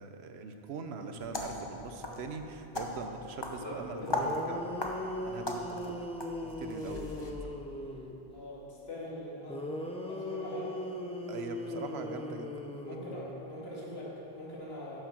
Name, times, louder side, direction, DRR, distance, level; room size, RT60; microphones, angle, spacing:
voice 1, 0.0-4.7 5.3-6.1 6.4-7.3 11.3-12.5, right 4 dB, 75° right, 6 dB, 1.0 m, -42 dB
sound 1, 1.1-7.3, left 2 dB, 25° left, 0.9 m, -39 dB
sound 2, 3.8-3.9 4.1-8.2 9.5-13.5, left 1 dB, 5° left, 0.5 m, -39 dB
voice 2, 8.3-9.6 10.0-10.7 11.3-12.1 12.8-15.0, left 1 dB, 65° left, -6 dB, 2.4 m, -43 dB
10.0 x 6.8 x 5.9 m, 3.0 s
omnidirectional pair, 1.1 m